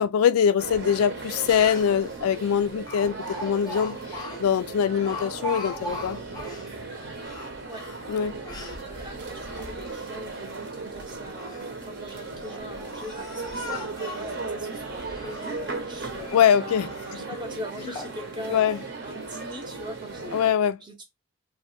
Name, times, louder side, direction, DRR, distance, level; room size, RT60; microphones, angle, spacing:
voice 1, 0.0-6.2 8.1-8.4 16.3-16.9 18.5-18.8 20.3-20.8, left 8 dB, 85° left, 0.3 m, -23 dB
sound 1, 0.6-20.5, right 3 dB, 50° right, 0.8 m, -37 dB
Speech, 1.3-1.4 1.5-2.1 2.9-6.7 7.2-8.8 9.4-10.2 11.1-11.7 12.4-14.4 14.9-15.8 16.1-16.7 17.2-17.3 17.8-18.2 18.6-18.9, equal, 20° left, 0.6 m, -39 dB
voice 2, 8.8-18.7 19.0-20.4 20.8-21.0, equal, 20° right, 0.7 m, -41 dB
3.1 x 2.1 x 3.1 m
head